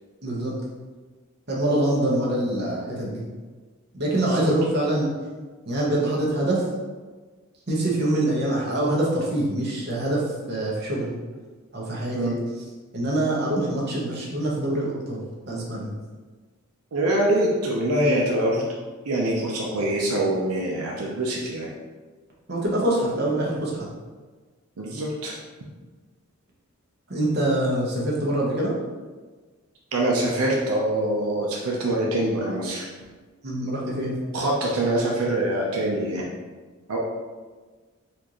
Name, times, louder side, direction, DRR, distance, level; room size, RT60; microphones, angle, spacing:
voice 1, 0.2-0.5 1.5-3.2 3.9-5.1 5.7-6.6 7.7-11.1 11.7-12.3 12.9-15.9 22.5-23.9 27.1-28.7 33.4-34.2, right 1 dB, 50° right, -4 dB, 0.9 m, -25 dB
voice 2, 4.1-4.5 12.1-12.4 16.9-18.6 19.1-21.7 24.8-25.4 29.9-32.9 34.3-36.3 36.9-37.0, right 1 dB, 85° right, -2 dB, 0.6 m, -24 dB
4.3 x 2.5 x 2.9 m, 1.3 s
head